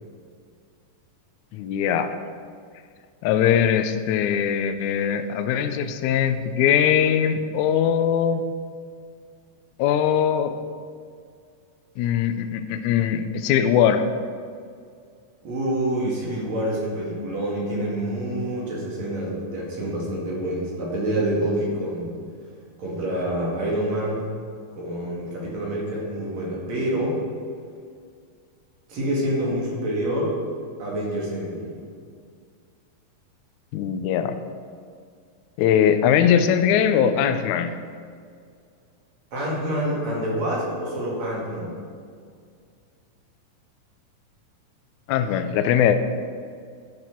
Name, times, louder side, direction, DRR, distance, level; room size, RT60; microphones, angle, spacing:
voice 1, 1.5-2.1 3.2-8.4 9.8-10.6 12.0-14.0 33.7-34.4 35.6-37.7 45.1-46.0, left 8 dB, 85° left, 8 dB, 1.7 m, -21 dB
voice 2, 15.4-22.2 22.8-24.3 24.8-27.2 28.9-30.4 30.8-31.8 39.3-41.8, right 1 dB, 55° right, -4 dB, 3.0 m, -27 dB
12.0 x 7.8 x 4.5 m, 2.2 s
omnidirectional pair, 4.1 m